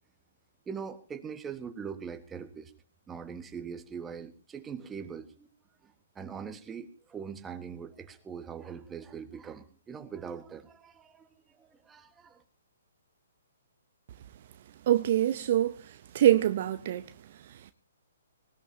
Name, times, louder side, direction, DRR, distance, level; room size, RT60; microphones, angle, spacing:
voice 1, 0.7-2.7 3.1-5.5 5.8-11.3 11.6-12.4, right 6 dB, 15° right, 1.5 m, -42 dB
voice 2, 14.9-15.8 16.1-17.0, right 12 dB, 45° right, 0.8 m, -24 dB
19.5 x 19.5 x 2.8 m
figure-of-eight pair, 125°, 0 cm